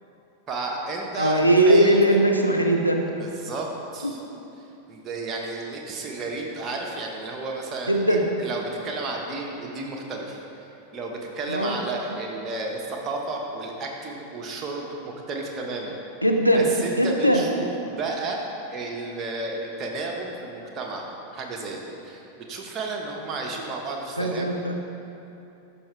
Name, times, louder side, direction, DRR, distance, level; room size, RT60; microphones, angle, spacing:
voice 1, 0.5-2.0 3.2-4.2 4.9-10.4 10.9-16.0 16.5-18.4 18.7-22.2 22.5-24.5, right 3 dB, 25° right, 0 dB, 1.2 m, -32 dB
voice 2, 1.2-3.0 4.0-4.1 7.9-8.2 11.5-11.8 16.2-16.7 17.0-17.4 24.2-24.7, right 1 dB, 90° left, 1 dB, 0.7 m, -19 dB
13.0 x 5.5 x 3.4 m, 2.8 s
figure-of-eight pair, 90°, 0 cm